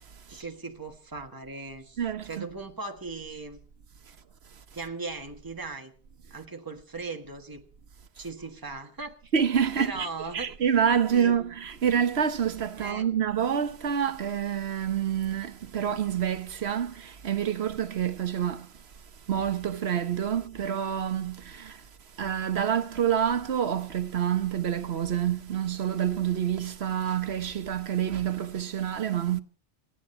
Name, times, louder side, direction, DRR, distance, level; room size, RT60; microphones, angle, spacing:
voice 1, 0.3-2.0 2.2-3.6 4.7-5.9 6.3-7.6 8.1-9.3 9.8-10.5 11.1-11.4 12.8-13.1, right 3 dB, 20° right, 1.6 m, -38 dB
voice 2, 2.0-2.5 9.3-10.1 10.3-18.7 19.3-21.8 22.2-29.4, right 8 dB, 80° right, 1.3 m, -27 dB
27.0 x 10.0 x 4.4 m
omnidirectional pair, 1.1 m